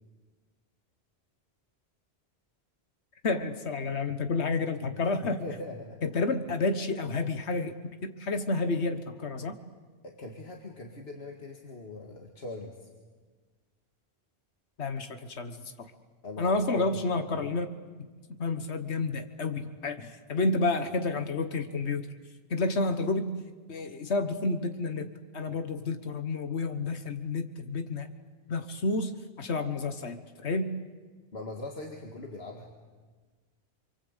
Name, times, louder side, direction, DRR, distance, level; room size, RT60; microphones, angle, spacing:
voice 1, 3.2-5.4 6.0-7.7 8.0-9.6 14.8-15.9 16.4-17.7 18.3-22.1 22.5-23.3 23.7-28.1 28.5-30.8, left 3 dB, 90° left, 8 dB, 1.6 m, -30 dB
voice 2, 5.3-6.0 10.0-12.9 16.2-16.9 17.3-17.5 31.3-32.7, left 2 dB, 70° left, 1 dB, 2.3 m, -41 dB
28.0 x 24.0 x 8.2 m, 1.4 s
omnidirectional pair, 1.1 m